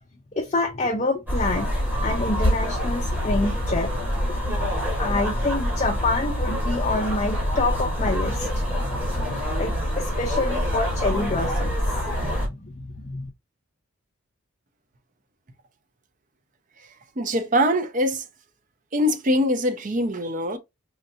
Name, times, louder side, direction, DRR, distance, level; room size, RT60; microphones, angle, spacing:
voice 1, 0.4-1.8 2.0-4.0 5.0-13.3, left 3 dB, 30° left, 0.6 m, -27 dB
sound 1, 1.3-12.5, equal, 10° right, 1.6 m, -25 dB
voice 2, 17.2-18.2 18.9-20.6, equal, 40° right, 0.6 m, -23 dB
4.3 x 2.7 x 2.7 m
head